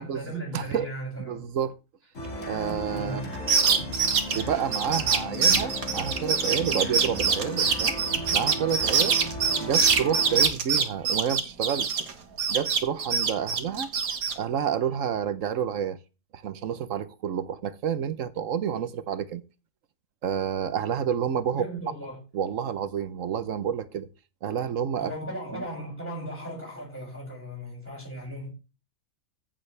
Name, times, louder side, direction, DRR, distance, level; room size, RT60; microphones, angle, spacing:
voice 1, 0.0-1.6 2.9-3.4 21.5-22.2 25.0-28.5, right 1 dB, 10° left, 6.6 m, -37 dB
voice 2, 0.5-0.9 1.2-1.7 2.4-3.2 4.3-7.9 8.3-9.2 9.6-12.0 12.5-13.9 14.4-16.0 16.3-19.4 20.2-21.6 22.3-24.1 24.4-25.1 25.5-25.6, right 8 dB, 70° right, 1.2 m, -29 dB
sound 1, 2.1-10.5, left 1 dB, 60° left, 2.7 m, -36 dB
sound 2, 3.3-12.1 12.4-14.3, right 6 dB, 90° right, 1.8 m, -24 dB
15.5 x 7.4 x 3.3 m
omnidirectional pair, 1.5 m